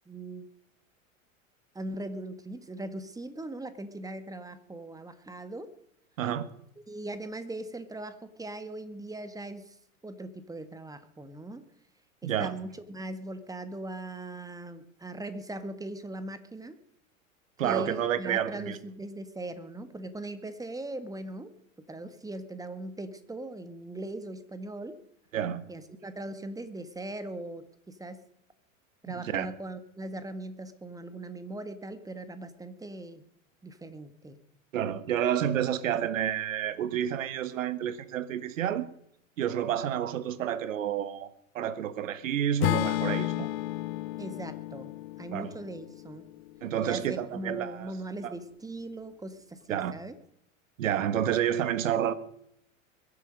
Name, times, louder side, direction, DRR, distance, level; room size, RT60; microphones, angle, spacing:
voice 1, 0.1-0.5 1.7-5.7 6.9-9.7 10.0-11.6 12.2-16.8 17.6-21.5 21.9-25.0 25.7-28.2 29.0-33.2 33.6-34.4 44.2-46.3 46.8-50.1, right 2 dB, 10° right, 1.7 m, -40 dB
voice 2, 6.2-6.5 12.2-12.5 17.6-18.8 25.3-25.6 29.1-29.5 34.7-38.9 39.4-41.3 41.5-43.5 45.3-45.5 46.6-47.9 48.2-48.3 49.7-49.9 50.8-52.1, right 10 dB, 70° right, 1.5 m, -29 dB
Acoustic guitar / Strum, 42.6-46.8, left 17 dB, 50° left, 0.8 m, -32 dB
22.5 x 10.5 x 5.3 m
figure-of-eight pair, 90°, 41 cm